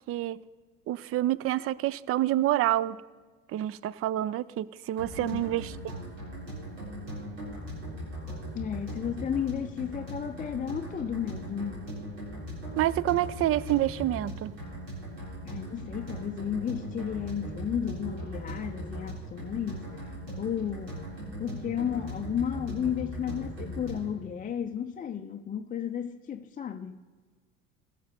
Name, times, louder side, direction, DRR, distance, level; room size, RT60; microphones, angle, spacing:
voice 1, 0.1-0.4 0.9-3.0 3.5-6.0 12.8-14.5, right 14 dB, 40° right, 0.4 m, -28 dB
sound 1, 5.0-24.2, equal, 90° right, 4.2 m, -39 dB
voice 2, 8.5-11.8 15.4-19.8 20.4-21.1 21.4-27.0, left 8 dB, 20° left, 0.5 m, -33 dB
16.5 x 6.6 x 5.2 m
hypercardioid pair, 70°, 38 cm